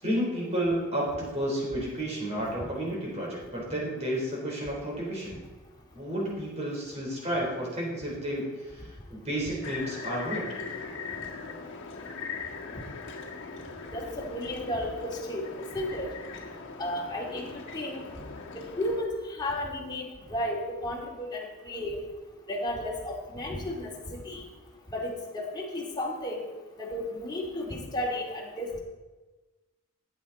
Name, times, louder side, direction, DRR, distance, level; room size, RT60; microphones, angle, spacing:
voice 1, 0.0-5.4 5.9-10.6, right 1 dB, 30° right, -3 dB, 4.5 m, -31 dB
sound 1, 9.6-19.0, left 4 dB, 60° left, 1.6 m, -40 dB
voice 2, 13.9-15.4 15.7-16.1 16.8-18.0 18.8-20.0 20.3-22.0 22.5-24.4 24.9-26.5 26.8-28.8, left 1 dB, 20° left, -2 dB, 2.6 m, -33 dB
15.0 x 9.4 x 4.3 m, 1.2 s
head